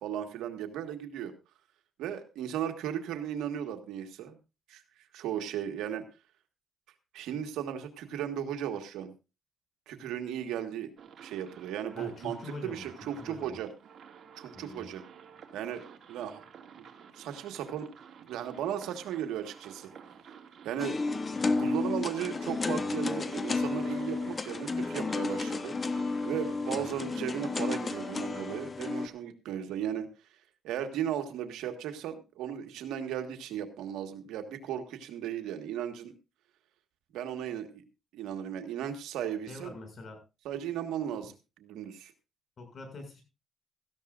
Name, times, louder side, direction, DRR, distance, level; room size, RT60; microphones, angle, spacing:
voice 1, 0.0-1.3 2.0-4.4 4.7-4.8 5.1-6.0 7.1-9.1 9.9-10.9 11.2-13.7 14.4-15.0 15.5-16.4 16.8-16.9 17.2-17.9 18.2-19.9 20.6-21.0 21.3-25.7 26.2-30.1 30.6-36.1 37.1-37.8 38.1-39.7 40.5-41.3 41.6-42.1, right 9 dB, 90° right, 6 dB, 1.7 m, -36 dB
sound 1, 11.0-28.6, right 7 dB, 60° right, 2.3 m, -52 dB
voice 2, 12.0-12.9 13.2-13.6 14.5-14.9 26.8-26.9 39.5-40.2 42.6-43.2, left 3 dB, 50° left, 5 dB, 7.0 m, -44 dB
sound 2, 20.8-29.1, left 3 dB, 30° left, 1.0 m, -32 dB
17.0 x 14.0 x 2.6 m, 0.29 s
cardioid pair, 90°, 0 cm